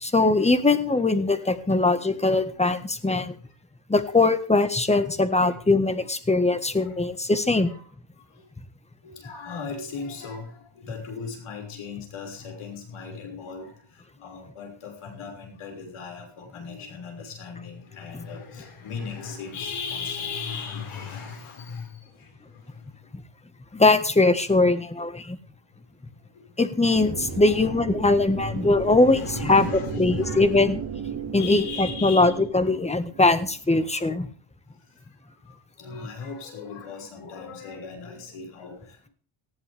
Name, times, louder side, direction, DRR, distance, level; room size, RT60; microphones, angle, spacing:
voice 1, 0.0-3.3 3.9-7.7 23.7-25.4 26.6-29.6 30.0-30.8 31.3-34.3, left 2 dB, 15° left, 11 dB, 1.6 m, -21 dB
voice 2, 4.0-4.4 4.9-5.0 5.4-5.6 6.7-6.9 7.6-7.8 9.0-13.7 14.2-21.9 27.4-27.8 28.3-30.9 31.4-32.4 35.5-39.1, left 5 dB, 80° left, 3 dB, 6.0 m, -37 dB
sound 1, 26.9-33.5, right 7 dB, 65° right, 4.0 m, -35 dB
19.0 x 14.5 x 3.6 m, 0.41 s
cardioid pair, 115°, 49 cm